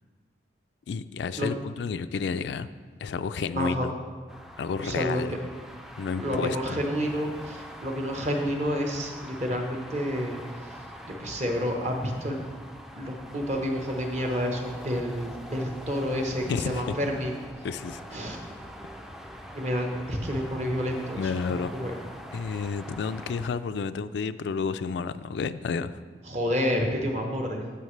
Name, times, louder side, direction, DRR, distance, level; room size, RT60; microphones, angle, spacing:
voice 1, 0.9-2.7 3.0-3.9 4.6-5.3 6.0-6.8 16.5-16.8 17.6-18.0 21.2-21.7 22.3-26.0, left 5 dB, 75° left, 12 dB, 0.3 m, -31 dB
voice 2, 3.6-3.9 4.8-5.2 6.2-10.4 11.0-12.4 13.0-17.3 18.1-18.4 19.5-22.0 26.3-27.6, equal, 40° right, 2 dB, 1.0 m, -29 dB
sound 1, 4.3-23.5, equal, 5° right, 0.4 m, -43 dB
13.5 x 5.7 x 3.2 m, 1.5 s
head